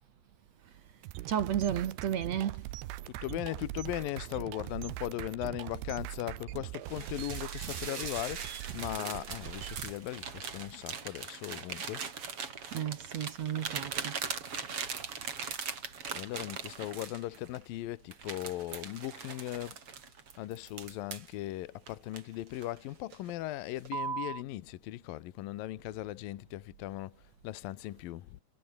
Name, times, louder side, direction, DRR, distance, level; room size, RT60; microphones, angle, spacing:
sound 1, 1.0-9.9, right 16 dB, 90° right, 3.2 m, -42 dB
voice 1, 1.3-2.6 12.7-14.2, right 9 dB, 60° right, 1.9 m, -32 dB
voice 2, 3.1-12.1 16.1-19.8 20.4-28.4, left 15 dB, 70° left, 2.5 m, -38 dB
cat food on plate, 6.8-17.6 18.1-21.3 21.9-22.8 23.1-23.4 23.8-24.4, right 6 dB, 35° right, 3.3 m, -40 dB
omnidirectional pair, 4.8 m